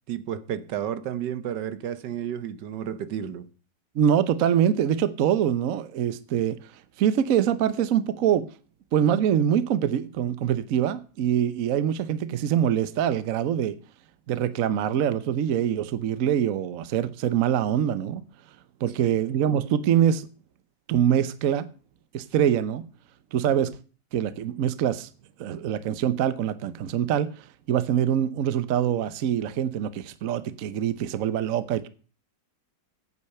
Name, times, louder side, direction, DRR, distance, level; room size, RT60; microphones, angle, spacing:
voice 1, 0.1-3.5 19.0-19.2, right 9 dB, 75° right, 1.5 m, -32 dB
voice 2, 3.9-6.6 7.0-8.5 8.9-13.8 14.3-18.2 18.8-20.3 20.9-21.7 22.1-22.9 23.3-23.7 24.1-25.1 25.4-27.3 27.7-31.9, right 9 dB, 60° right, 1.0 m, -24 dB
9.3 x 8.6 x 6.8 m
omnidirectional pair, 1.9 m